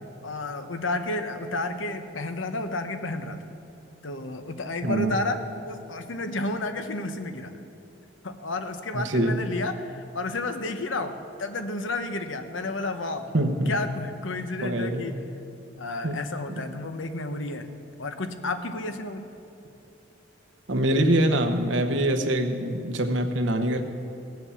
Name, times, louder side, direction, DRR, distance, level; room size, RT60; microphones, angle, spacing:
voice 1, 0.2-3.4 4.0-7.5 8.2-13.3 13.7-15.2 15.8-17.7 18.0-19.3, left 2 dB, 85° left, 8 dB, 1.1 m, -31 dB
voice 2, 4.8-5.1 8.9-9.4 13.3-13.7 14.6-15.1 16.0-16.2 16.5-16.6 20.7-23.8, right 1 dB, 75° right, 5 dB, 1.1 m, -24 dB
17.5 x 7.9 x 7.1 m, 3.0 s
head